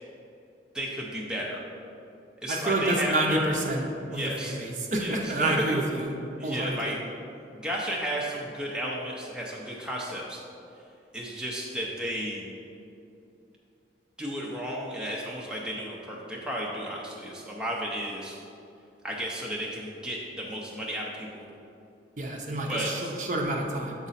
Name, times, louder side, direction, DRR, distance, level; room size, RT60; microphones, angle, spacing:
voice 1, 0.7-1.6 2.4-3.5 4.1-4.6 5.0-5.8 6.4-7.0 7.6-10.4 11.1-12.4 14.2-18.4 19.0-21.4 22.7-23.1, equal, 5° right, -4 dB, 0.5 m, -33 dB
voice 2, 2.5-3.8 4.1-6.1 6.4-6.8 22.2-24.1, right 2 dB, 45° right, 0 dB, 0.7 m, -28 dB
7.3 x 4.0 x 4.1 m, 2.6 s
head